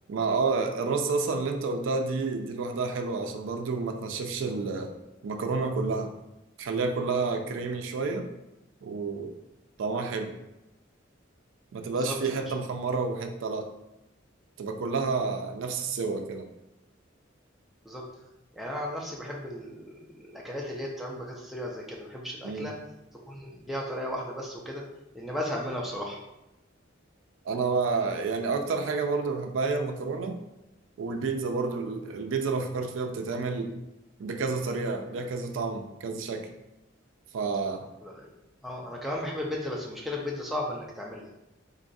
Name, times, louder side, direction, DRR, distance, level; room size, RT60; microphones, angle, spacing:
voice 1, 0.1-4.9 5.2-6.1 6.6-8.3 8.8-9.3 9.8-10.3 11.7-13.7 14.6-16.5 22.4-22.7 27.5-30.4 31.0-33.7 34.2-36.5 37.3-37.9, right 4 dB, 75° right, 5 dB, 0.4 m, -29 dB
voice 2, 11.9-12.4 17.8-18.0 18.5-22.7 23.3-24.8 25.1-26.2 38.0-38.3 38.6-41.4, left 1 dB, ahead, -3 dB, 0.4 m, -35 dB
3.8 x 2.3 x 2.6 m, 0.91 s
head